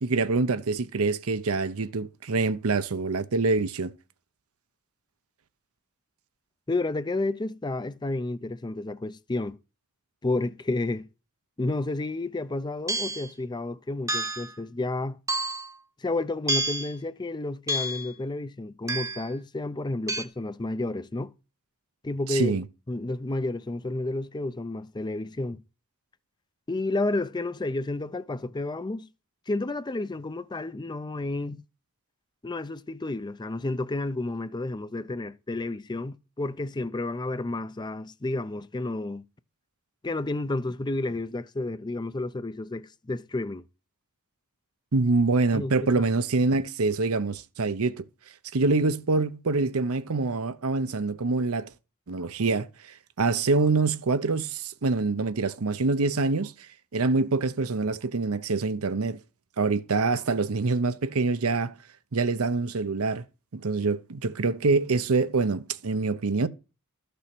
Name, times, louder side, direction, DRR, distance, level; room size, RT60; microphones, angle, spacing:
voice 1, 0.0-3.9 22.3-22.6 44.9-48.1 48.5-51.7 52.1-52.7 53.2-56.5 56.9-59.2 59.6-61.8 62.1-63.2 63.5-66.5, right 3 dB, 70° right, 0.8 m, -25 dB
voice 2, 6.7-9.6 10.2-11.1 11.6-15.2 16.0-21.3 22.0-22.6 22.9-25.6 26.7-29.1 29.5-31.6 32.4-39.2 40.0-43.6 45.5-46.1, left 2 dB, 20° left, 0.5 m, -31 dB
sound 1, 12.9-13.3 14.1-14.5 15.3-15.7 16.5-16.9 17.7-18.1 18.9-19.3 20.1-20.2, right 1 dB, 15° right, 0.9 m, -29 dB
13.0 x 6.8 x 6.0 m
head